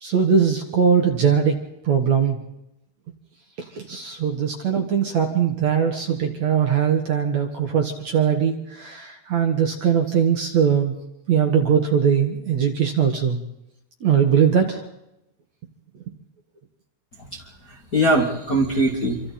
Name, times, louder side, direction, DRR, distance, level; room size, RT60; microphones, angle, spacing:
voice 1, 0.0-1.6 1.8-2.4 3.8-10.9 11.3-13.4 14.0-14.8, right 7 dB, 50° right, 3 dB, 2.5 m, -20 dB
voice 2, 17.2-19.2, right 1 dB, 30° left, -1 dB, 1.9 m, -22 dB
27.0 x 25.5 x 4.4 m, 0.86 s
omnidirectional pair, 4.8 m